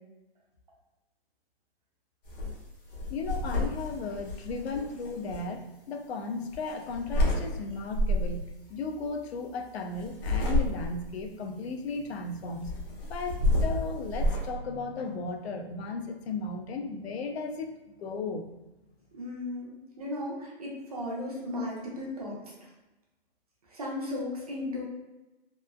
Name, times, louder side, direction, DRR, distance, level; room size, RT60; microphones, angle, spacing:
sound 1, 2.2-2.5 2.9-5.4 6.5-7.4 7.9-8.4 10.0-11.1 12.6-14.5, left 1 dB, 60° left, 0.8 m, -29 dB
voice 1, 3.1-17.7 18.0-18.6, left 4 dB, 85° left, 4 dB, 0.5 m, -35 dB
voice 2, 19.1-22.4 23.7-24.8, left 1 dB, 40° right, -3 dB, 0.5 m, -35 dB
3.0 x 2.1 x 2.2 m, 1.0 s
hypercardioid pair, 180°, 31 cm